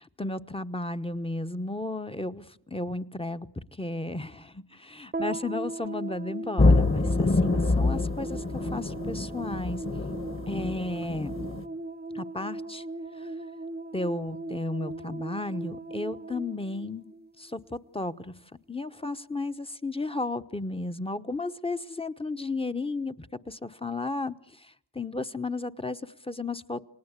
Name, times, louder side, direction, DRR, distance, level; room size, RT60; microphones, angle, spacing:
voice 1, 0.2-9.8 10.5-11.3 12.1-12.8 13.2-13.3 13.9-17.1 17.4-18.3 18.7-26.8, left 2 dB, 15° left, 10 dB, 1.0 m, -34 dB
sound 1, 5.1-17.6, right 2 dB, 20° right, 1.0 m, -38 dB
sound 2, 6.6-11.6, left 3 dB, 30° left, 1.6 m, -25 dB
28.5 x 19.5 x 8.3 m, 0.72 s
cardioid pair, 60°, 44 cm